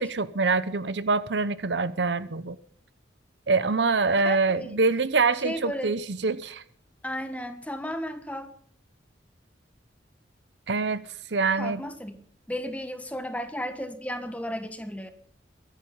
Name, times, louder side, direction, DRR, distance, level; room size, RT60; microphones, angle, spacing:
voice 1, 0.0-2.6 3.5-6.6 10.7-11.0 11.3-11.8, right 4 dB, 70° right, 0.8 m, -25 dB
voice 2, 4.2-4.8 5.4-5.9 7.0-8.5 11.6-12.2 12.5-15.1, equal, 10° left, 1.4 m, -34 dB
23.0 x 10.0 x 5.5 m
head